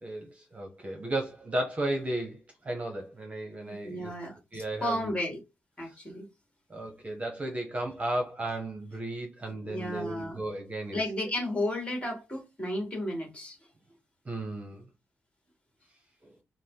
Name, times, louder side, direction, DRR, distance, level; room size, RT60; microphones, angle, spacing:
voice 1, 0.0-4.1 4.5-5.1 6.7-11.0 14.2-14.9 16.2-16.3, right 1 dB, 25° right, 1.0 m, -34 dB
voice 2, 3.7-5.4 5.8-6.3 9.7-10.4 10.9-13.6, left 1 dB, 20° left, 1.8 m, -33 dB
4.8 x 2.1 x 3.7 m
wide cardioid pair, 135°, 5 cm